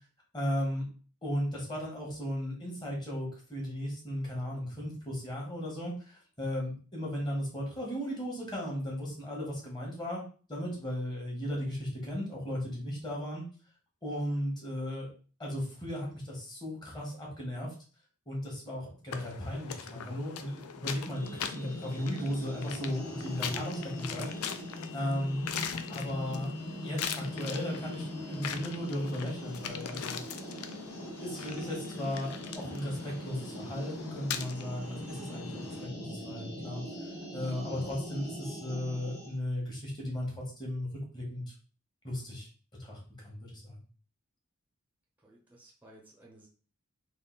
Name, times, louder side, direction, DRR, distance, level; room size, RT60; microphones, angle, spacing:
voice 1, 0.3-0.8 1.2-10.2 10.5-13.4 14.0-15.1 15.4-17.7 18.3-24.3 24.9-25.4 25.9-26.5 26.8-30.2 31.2-37.1 37.3-40.3 40.6-40.9 41.1-41.4 42.0-42.5 42.8-43.8, equal, 20° left, -2 dB, 1.6 m, -36 dB
sound 1, 19.1-35.8, left 8 dB, 70° left, 0.5 m, -42 dB
sound 2, 21.1-39.3, left 1 dB, 40° left, 1.7 m, -41 dB
voice 2, 45.2-46.5, right 1 dB, 10° right, -3 dB, 0.9 m, -57 dB
3.6 x 2.7 x 4.0 m, 0.39 s
head